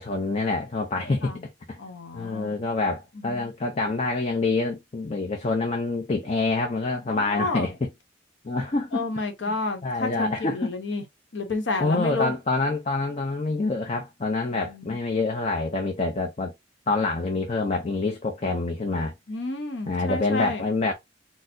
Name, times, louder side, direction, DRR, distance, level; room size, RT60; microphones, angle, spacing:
voice 1, 0.0-1.3 1.7-1.8 2.1-7.9 8.4-9.0 9.4-9.6 9.8-10.7 11.8-16.5 16.9-19.1 19.9-20.9, left 3 dB, 35° left, 0.5 m, -26 dB
voice 2, 1.8-2.6 3.1-3.5 7.1-7.7 8.9-11.0 11.3-12.3 14.5-15.0 19.3-20.6, left 3 dB, 80° left, 0.9 m, -31 dB
4.2 x 2.0 x 2.6 m
head